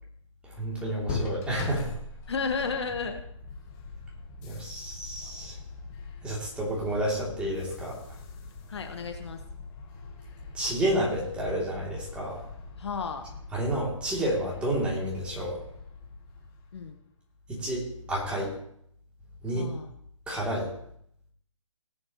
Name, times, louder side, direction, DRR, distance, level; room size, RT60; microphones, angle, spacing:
voice 1, 0.4-1.9 4.4-5.5 6.2-8.0 10.5-12.4 13.5-15.6 17.5-18.5 19.4-19.7 20.3-20.7, right 1 dB, 5° right, -5 dB, 2.8 m, -30 dB
sound 1, 1.1-16.8, left 3 dB, 20° left, 1.3 m, -42 dB
voice 2, 2.3-3.2 8.7-9.4 12.8-13.2 16.7-16.9 19.5-19.9, left 5 dB, 55° left, 6 dB, 1.3 m, -32 dB
19.5 x 8.8 x 3.1 m, 0.71 s
hypercardioid pair, 155°, 17 cm